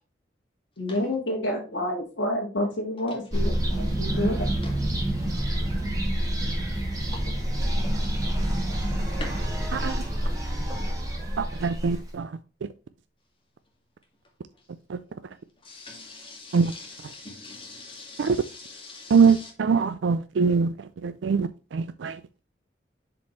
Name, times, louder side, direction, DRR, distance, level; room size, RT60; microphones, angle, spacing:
voice 1, 0.8-4.4, left 1 dB, 80° left, 2.0 m, -29 dB
sound 1, 3.3-12.1, right 1 dB, 20° right, 2.1 m, -27 dB
voice 2, 11.4-12.7 14.9-15.0 16.5-16.7 18.2-18.4 19.1-22.2, right 5 dB, 80° right, 0.4 m, -23 dB
voice 3, 15.6-19.5, left 2 dB, 30° left, 2.0 m, -42 dB
6.8 x 5.0 x 3.1 m
head